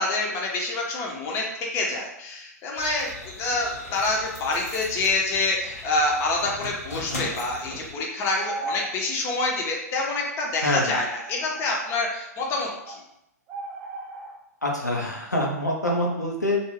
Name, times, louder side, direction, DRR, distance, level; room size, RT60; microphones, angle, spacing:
voice 1, 0.0-1.5 1.7-3.1 3.4-13.0, left 2 dB, 30° left, -1 dB, 0.6 m, -27 dB
sound 1, 2.8-7.9, left 2 dB, 65° left, 0.9 m, -39 dB
sound 2, 8.3-9.0 10.4-10.5 11.0-12.0 12.8-13.0 13.5-14.4, right 3 dB, 25° right, 0.4 m, -37 dB
voice 2, 10.6-10.9 14.6-16.6, left 1 dB, 90° left, -1 dB, 0.6 m, -25 dB
2.4 x 2.2 x 3.1 m, 0.80 s
figure-of-eight pair, 100°, 9 cm